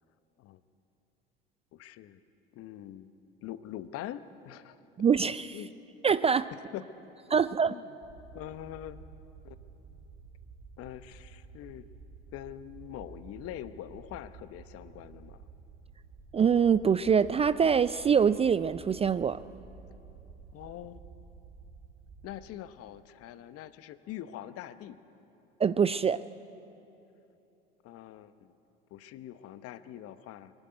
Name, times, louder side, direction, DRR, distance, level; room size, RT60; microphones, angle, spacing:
voice 1, 1.7-2.2 2.5-3.1 3.4-4.8 5.5-5.7 6.7-6.8 7.4-7.9 8.3-9.0 9.4-9.6 10.8-11.9 12.3-15.4 20.5-21.0 22.2-25.0 27.8-28.5 28.9-30.5, left 12 dB, 50° left, 13 dB, 1.0 m, -43 dB
voice 2, 5.0-5.6 6.0-6.5 7.3-7.7 16.3-19.4 25.6-26.2, right 7 dB, 20° right, 16 dB, 0.4 m, -24 dB
sound 1, 8.0-22.5, right 5 dB, 45° right, 2.6 m, -51 dB
22.5 x 12.0 x 9.5 m, 2.9 s
hypercardioid pair, 70°, 29 cm